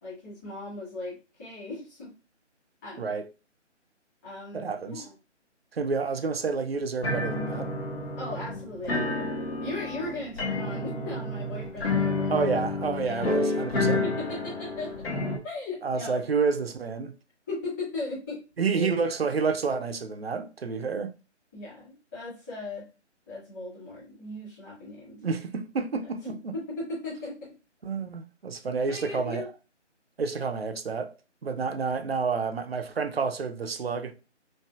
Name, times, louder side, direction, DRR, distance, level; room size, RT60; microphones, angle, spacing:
voice 1, 0.0-2.1 2.8-3.1 4.2-5.1 8.2-9.3 9.6-12.3 13.0-15.0 15.4-16.2 17.5-18.4 18.7-18.9 21.5-22.9 23.3-25.2 26.2-27.5 28.9-29.5, left 2 dB, 15° left, 1.9 m, -38 dB
voice 2, 4.5-5.1 5.7-7.7 12.3-14.1 15.8-17.1 18.6-21.2 25.2-26.5 27.8-29.5 30.2-31.1 31.4-34.1, right 5 dB, 55° right, 0.6 m, -29 dB
sound 1, 7.0-15.4, left 2 dB, 55° left, 1.5 m, -30 dB
5.7 x 2.7 x 2.4 m
figure-of-eight pair, 170°, 36 cm